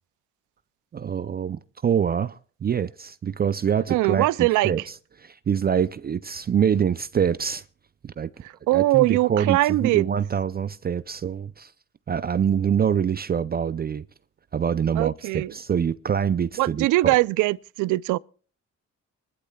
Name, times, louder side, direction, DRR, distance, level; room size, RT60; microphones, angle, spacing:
voice 1, 0.9-7.6 8.0-8.3 8.7-11.7 12.1-14.0 14.5-17.2, right 8 dB, 30° right, 0.5 m, -25 dB
voice 2, 3.9-4.7 8.7-10.1 15.0-15.5 16.6-18.2, right 18 dB, 90° right, 0.5 m, -21 dB
24.5 x 11.5 x 2.3 m
cardioid pair, 90°, 30 cm